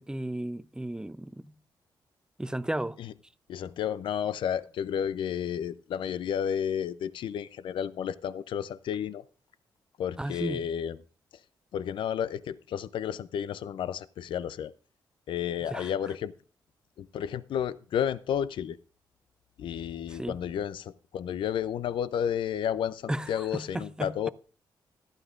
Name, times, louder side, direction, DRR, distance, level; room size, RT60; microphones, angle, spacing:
voice 1, 0.0-1.5 2.4-3.0 10.2-10.6 15.7-15.9 20.1-20.3 23.1-24.3, right 1 dB, 10° right, 0.5 m, -34 dB
voice 2, 3.5-9.2 10.0-11.0 11.7-14.7 15.3-16.3 17.0-18.8 19.6-24.3, left 9 dB, 85° left, 0.5 m, -32 dB
14.5 x 12.0 x 2.5 m
cardioid pair, 75°, 8 cm